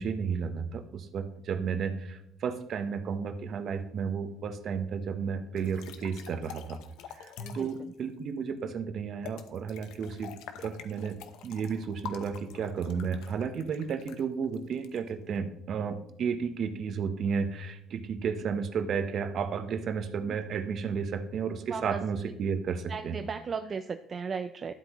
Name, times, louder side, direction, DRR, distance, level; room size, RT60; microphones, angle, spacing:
voice 1, 0.0-6.8 7.1-10.3 10.6-11.2 11.4-23.2, right 6 dB, 55° right, 9 dB, 1.0 m, -33 dB
sound 1, 5.6-7.8 9.2-15.4, left 7 dB, 80° left, 0.9 m, -46 dB
voice 2, 7.4-7.9 20.3-20.4 21.7-22.0 22.9-24.7, right 5 dB, 35° right, 9 dB, 0.5 m, -36 dB
12.0 x 7.9 x 3.1 m, 0.79 s
cardioid pair, 110°, 0 cm